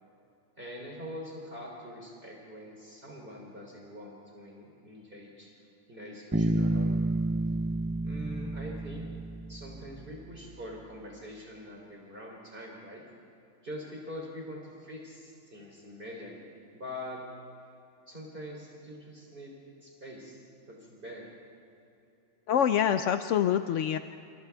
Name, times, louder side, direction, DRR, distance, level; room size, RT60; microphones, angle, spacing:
voice 1, 0.6-7.0 8.0-9.1 9.5-13.0 13.6-17.2 18.1-19.5 19.8-20.4 20.7-21.3, equal, 45° right, -2 dB, 3.8 m, -44 dB
Bass guitar, 6.3-10.0, right 2 dB, 15° right, 0.6 m, -30 dB
voice 2, 22.5-24.0, left 9 dB, 75° left, 9 dB, 1.0 m, -25 dB
29.5 x 28.5 x 3.5 m, 2.8 s
omnidirectional pair, 1.3 m